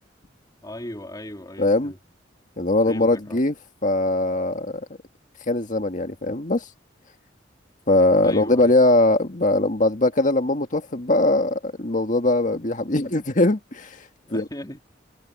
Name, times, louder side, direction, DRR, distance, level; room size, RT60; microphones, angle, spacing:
voice 1, 0.6-2.0 2.9-3.4 8.2-8.7 14.3-14.8, left 1 dB, 20° left, 3.4 m, -37 dB
voice 2, 1.6-1.9 2.6-3.5 3.8-4.9 5.5-6.7 7.9-14.5, left 2 dB, 45° left, 1.8 m, -21 dB
head